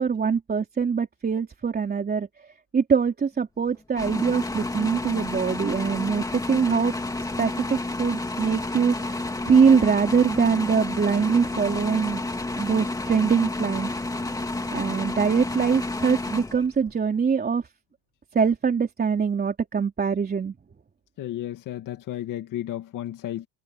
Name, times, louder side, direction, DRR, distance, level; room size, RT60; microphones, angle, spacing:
voice 1, 0.0-2.3 2.7-6.9 7.4-12.2 12.6-13.9 14.7-17.6 18.3-20.5, right 6 dB, 20° right, 3.6 m, -23 dB
sound 1, 4.0-17.0, left 2 dB, 10° left, 2.3 m, -30 dB
voice 2, 21.2-23.5, left 12 dB, 45° left, 2.2 m, -33 dB
cardioid pair, 140°, 44 cm